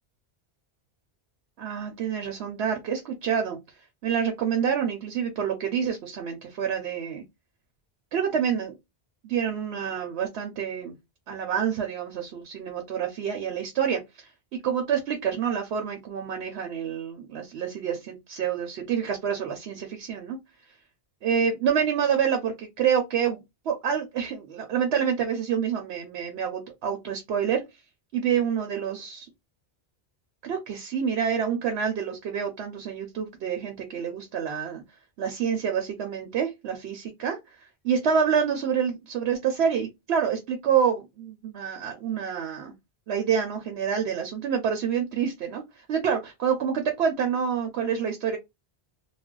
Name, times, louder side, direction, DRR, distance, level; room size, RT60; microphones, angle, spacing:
voice 1, 1.6-3.6 4.0-7.2 8.1-8.7 9.2-10.9 11.3-14.3 14.6-20.4 21.2-23.4 23.7-27.6 28.1-29.3 30.4-34.8 35.2-37.4 37.8-42.7 43.1-45.6 45.9-48.4, right 7 dB, 85° right, 0.9 m, -27 dB
2.4 x 2.1 x 3.6 m
omnidirectional pair, 1.1 m